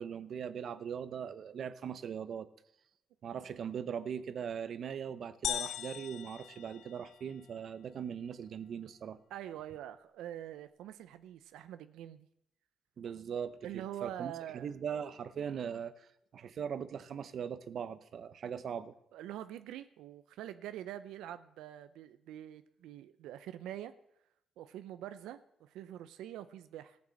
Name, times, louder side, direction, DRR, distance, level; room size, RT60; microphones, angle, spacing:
voice 1, 0.0-2.5 3.2-9.2 13.0-18.9, right 7 dB, 60° right, 13 dB, 0.8 m, -40 dB
sound 1, 5.4-7.4, left 11 dB, 85° left, 0.5 m, -39 dB
voice 2, 9.3-12.3 13.6-14.7 19.1-23.9 24.6-27.0, right 11 dB, 90° right, 11 dB, 0.5 m, -45 dB
14.5 x 6.0 x 7.6 m, 0.77 s
cardioid pair, 90°, 0 cm